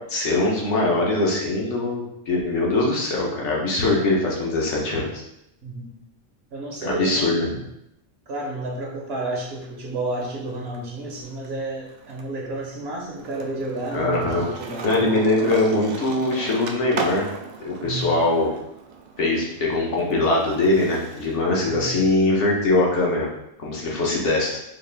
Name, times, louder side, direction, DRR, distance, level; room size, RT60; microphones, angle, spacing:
voice 1, 0.1-5.2 6.8-7.5 13.9-14.4 14.8-17.2 17.6-18.5 19.2-23.3 23.6-24.6, left 2 dB, 65° left, -3 dB, 1.2 m, -22 dB
voice 2, 5.6-6.0 6.5-7.7 8.3-15.1 17.8-18.2 21.7-22.0, right 2 dB, 60° right, -1 dB, 0.8 m, -31 dB
Skateboard, 9.2-10.8 11.1-21.4, right 5 dB, 85° right, 0.4 m, -37 dB
4.1 x 2.4 x 3.3 m, 0.83 s
omnidirectional pair, 1.3 m